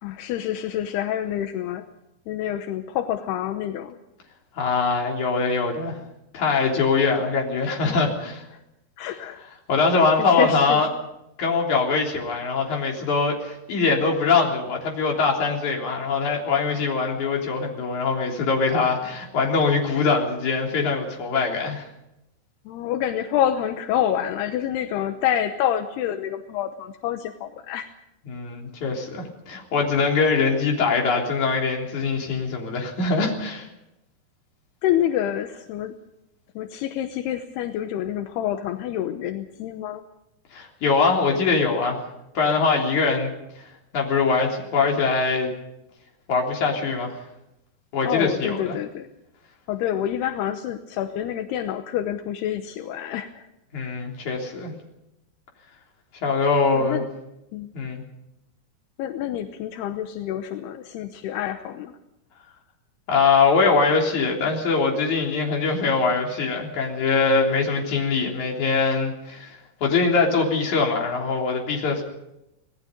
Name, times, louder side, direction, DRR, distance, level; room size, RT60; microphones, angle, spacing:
voice 1, 0.0-1.9 2.3-4.0 9.0-9.4 10.1-11.0 22.7-27.9 34.8-36.0 36.6-40.0 48.0-49.1 49.7-53.4 56.7-57.1 57.5-57.7 59.0-62.0, left 11 dB, 80° left, 7 dB, 3.0 m, -27 dB
voice 2, 4.6-6.0 6.3-8.4 9.7-10.9 11.4-21.9 28.3-33.7 40.5-42.0 42.3-43.3 43.9-45.5 46.3-47.1 47.9-48.8 53.7-54.7 56.2-57.0 57.7-58.0 63.1-72.0, left 4 dB, 50° left, 0 dB, 4.6 m, -22 dB
27.0 x 19.0 x 5.2 m, 0.86 s
omnidirectional pair, 4.7 m